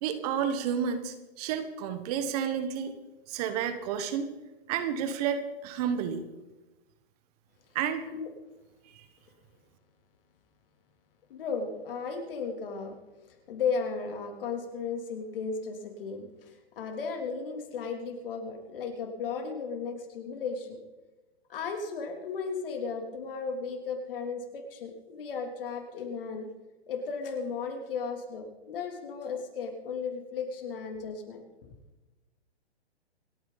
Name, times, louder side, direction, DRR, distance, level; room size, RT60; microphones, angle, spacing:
voice 1, 0.0-2.9 3.3-4.3 4.7-6.3 7.7-8.0, right 8 dB, 35° right, 9 dB, 1.4 m, -31 dB
voice 2, 11.3-13.0 13.3-20.8 21.5-26.5 26.9-31.7, left 5 dB, 60° left, 4 dB, 3.1 m, -35 dB
27.0 x 9.3 x 4.1 m, 1.1 s
hypercardioid pair, 140°, 32 cm